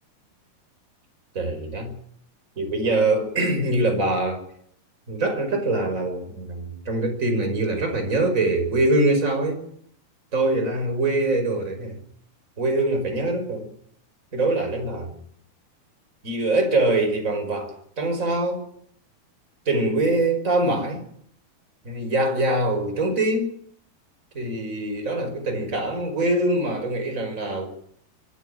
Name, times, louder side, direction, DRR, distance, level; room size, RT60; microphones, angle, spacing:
voice 1, 1.4-1.9 2.6-4.4 5.1-9.6 10.3-12.0 12.6-13.7 14.3-15.1 16.2-18.7 19.7-21.0 21.9-23.6 24.4-27.7, right 2 dB, 20° right, 5.2 m, -23 dB
25.0 x 12.5 x 10.0 m
omnidirectional pair, 4.7 m